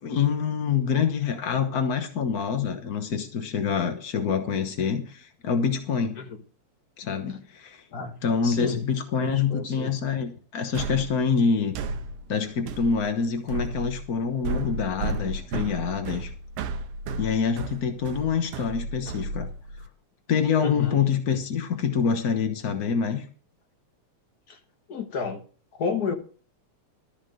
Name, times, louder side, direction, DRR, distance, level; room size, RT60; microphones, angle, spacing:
voice 1, 0.0-6.2 7.0-7.8 8.2-11.7 12.3-16.3 17.2-19.5 20.3-23.3, left 6 dB, 75° left, 0.8 m, -26 dB
voice 2, 8.4-8.9 9.1-10.0 20.6-21.0 24.5-24.6 24.9-25.4 25.8-26.1, left 5 dB, 50° left, 1.2 m, -31 dB
sound 1, 10.8-19.9, right 3 dB, 70° right, 1.5 m, -34 dB
13.0 x 5.3 x 7.7 m
omnidirectional pair, 3.5 m